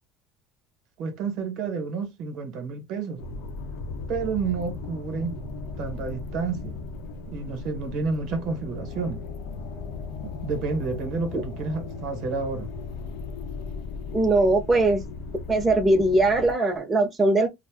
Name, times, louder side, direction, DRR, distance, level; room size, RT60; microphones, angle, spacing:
voice 1, 1.0-3.2 4.1-5.3 5.8-6.8 7.3-9.2 10.4-12.7, right 4 dB, 65° right, 0.9 m, -30 dB
sound 1, 3.2-16.5, left 3 dB, 75° left, 0.7 m, -36 dB
voice 2, 14.1-15.0 15.5-17.5, right 2 dB, 20° right, 0.7 m, -20 dB
2.5 x 2.0 x 3.3 m
supercardioid pair, 115°, 0 cm